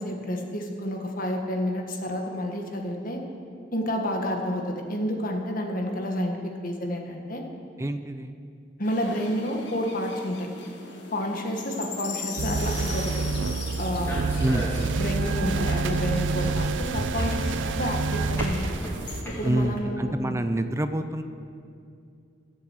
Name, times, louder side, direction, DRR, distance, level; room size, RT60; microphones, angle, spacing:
voice 1, 0.0-3.2 3.7-7.4 8.8-10.5 11.1-13.2 13.8-14.2 15.0-17.5 17.7-18.7 19.2-20.4, equal, 50° left, 2 dB, 1.5 m, -30 dB
voice 2, 7.8-8.3 14.4-15.0 19.4-21.2, right 1 dB, 15° right, 9 dB, 0.5 m, -27 dB
sound 1, 8.8-19.5, left 4 dB, 65° left, 1.9 m, -41 dB
sound 2, 12.4-19.2, right 4 dB, 80° right, 0.5 m, -28 dB
sound 3, 12.6-19.8, equal, 15° left, 2.6 m, -34 dB
14.5 x 7.6 x 8.0 m, 2.4 s
head